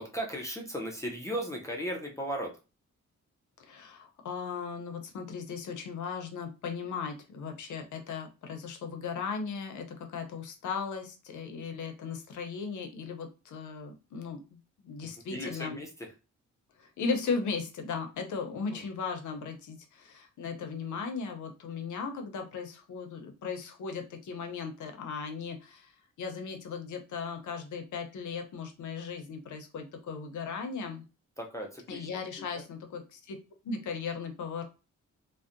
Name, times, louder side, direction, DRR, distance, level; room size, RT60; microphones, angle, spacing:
voice 1, 0.0-2.6 15.3-16.1 18.7-18.8 31.4-32.1 32.4-32.5, equal, 10° left, -1 dB, 0.4 m, -36 dB
voice 2, 3.6-14.4 14.8-15.8 16.8-25.9 26.2-31.0 31.9-33.4 33.6-34.6, left 5 dB, 75° left, 5 dB, 0.6 m, -37 dB
2.6 x 2.0 x 2.4 m, 0.30 s
wide cardioid pair, 170°, 30 cm